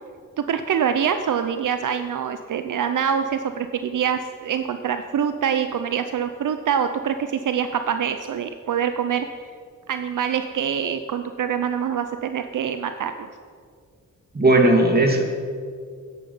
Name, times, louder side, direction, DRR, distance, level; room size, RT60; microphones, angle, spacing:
voice 1, 0.4-9.3 9.9-13.1, right 8 dB, 70° right, 8 dB, 0.7 m, -25 dB
voice 2, 14.3-15.2, right 2 dB, 30° right, 2 dB, 2.4 m, -16 dB
13.5 x 10.0 x 5.5 m, 2.1 s
cardioid pair, 75°, 33 cm